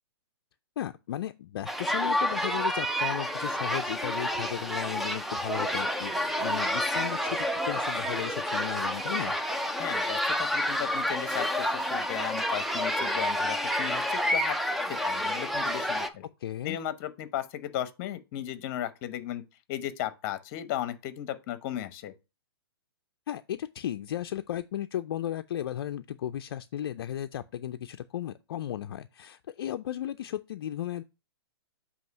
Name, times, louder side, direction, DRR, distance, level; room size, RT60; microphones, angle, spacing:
voice 1, 0.8-9.4 16.4-16.8 23.3-31.0, left 11 dB, 65° left, 0.4 m, -35 dB
sound 1, 1.7-16.1, equal, ahead, 0.4 m, -29 dB
voice 2, 9.8-14.6 14.9-16.3 16.6-19.4 19.7-22.1, left 12 dB, 40° left, 0.8 m, -36 dB
7.8 x 2.8 x 5.3 m
hypercardioid pair, 135°, 13 cm